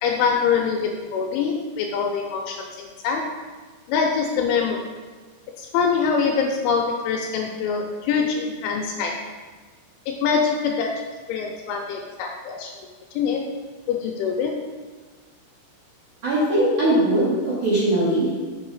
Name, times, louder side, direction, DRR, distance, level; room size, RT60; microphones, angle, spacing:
voice 1, 0.0-3.3 3.9-4.9 5.6-9.1 10.1-12.7 13.1-13.4 13.9-14.5, left 6 dB, 85° left, 1 dB, 2.8 m, -24 dB
voice 2, 16.2-18.4, right 1 dB, 50° right, -9 dB, 2.4 m, -20 dB
7.6 x 6.1 x 4.7 m, 1.4 s
omnidirectional pair, 5.9 m